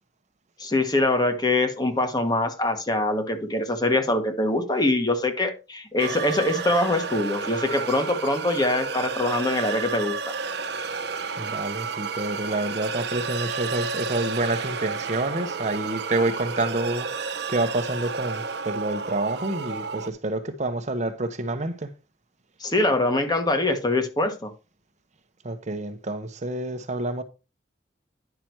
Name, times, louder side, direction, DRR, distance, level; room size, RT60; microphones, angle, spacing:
voice 1, 0.6-10.2 22.6-24.5, left 2 dB, 25° left, 1.5 m, -23 dB
sound 1, 6.0-20.1, right 5 dB, 65° right, 1.0 m, -31 dB
voice 2, 11.4-21.9 25.4-27.2, right 2 dB, 40° right, 1.0 m, -28 dB
10.0 x 5.9 x 4.6 m
head